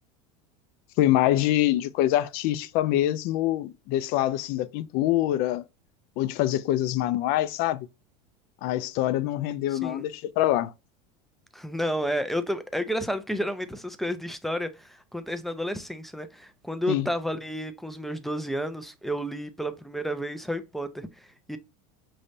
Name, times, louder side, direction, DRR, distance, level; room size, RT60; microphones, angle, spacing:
voice 1, 1.0-5.6 6.2-7.9 8.6-10.7 16.9-17.1, left 14 dB, 55° left, 0.5 m, -25 dB
voice 2, 9.7-10.1 11.5-21.6, equal, ahead, 0.4 m, -31 dB
5.3 x 3.2 x 2.6 m
supercardioid pair, 125°, 19 cm